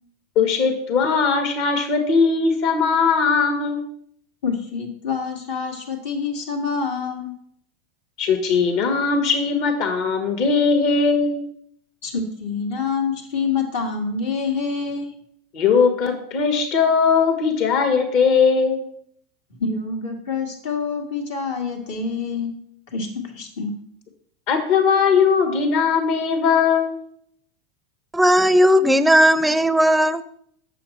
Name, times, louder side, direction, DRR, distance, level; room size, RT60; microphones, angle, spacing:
voice 1, 0.3-3.8 8.2-11.5 15.5-18.9 24.5-27.0, left 5 dB, 55° left, 5 dB, 1.5 m, -19 dB
voice 2, 4.4-7.3 12.0-15.1 19.6-22.5 22.9-23.7, left 5 dB, 70° left, 2 dB, 1.8 m, -26 dB
voice 3, 28.1-30.2, equal, 5° right, 15 dB, 0.5 m, -16 dB
7.6 x 6.2 x 4.2 m, 0.67 s
hypercardioid pair, 90°, 0 cm